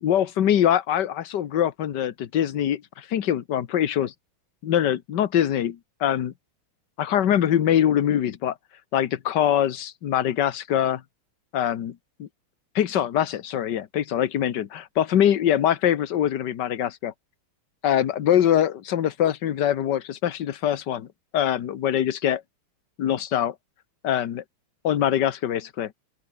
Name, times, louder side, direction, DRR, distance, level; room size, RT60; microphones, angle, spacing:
voice 1, 0.0-4.1 4.6-6.3 7.0-8.5 8.9-11.0 11.5-11.9 12.7-17.1 17.8-21.1 21.3-22.4 23.0-23.5 24.0-24.4 24.8-25.9, left 10 dB, 60° left, 1.7 m, -23 dB
open air
omnidirectional pair, 2.3 m